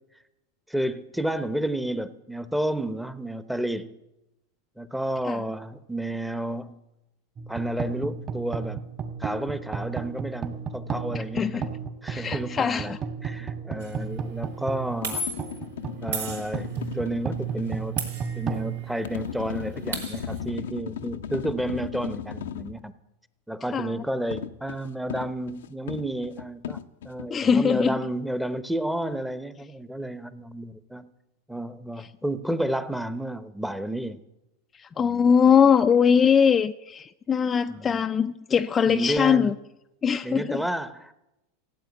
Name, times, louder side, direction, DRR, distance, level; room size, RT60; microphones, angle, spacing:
voice 1, 0.7-4.0 4.8-6.8 7.5-8.8 9.2-11.7 12.0-13.0 13.2-15.2 16.0-22.9 23.5-26.8 27.0-31.1 31.5-34.2 35.0-35.3 37.7-38.1 38.9-39.5 40.2-41.1, right 1 dB, ahead, 1.0 m, -31 dB
sound 1, 7.4-19.8, right 6 dB, 35° right, 2.2 m, -34 dB
voice 2, 11.4-11.7 12.1-13.0 23.7-23.9 27.3-28.0 34.8-39.5 40.0-40.6, left 7 dB, 25° left, 0.5 m, -21 dB
sound 2, 13.8-14.0 15.0-15.6 16.1-17.0 18.0-18.9 19.2-19.3 19.5-20.4, right 2 dB, 85° right, 4.8 m, -34 dB
sound 3, 14.9-17.8 19.0-22.8 24.3-27.3, left 9 dB, 80° left, 0.8 m, -36 dB
15.5 x 8.0 x 9.7 m
hypercardioid pair, 110°, 0 cm